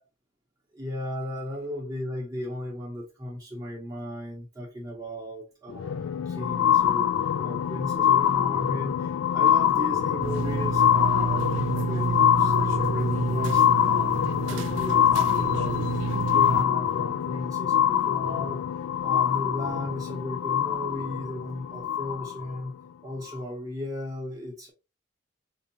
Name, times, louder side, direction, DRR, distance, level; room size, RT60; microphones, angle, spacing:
voice 1, 0.7-7.1 7.4-14.1 14.5-18.6 19.0-22.7 23.0-24.7, left 1 dB, 20° right, 0.8 m, -35 dB
sound 1, 5.7-22.6 23.3-23.4, left 10 dB, 90° left, 0.3 m, -24 dB
sound 2, 10.2-16.6, right 5 dB, 65° right, 0.3 m, -30 dB
4.7 x 2.7 x 2.8 m
head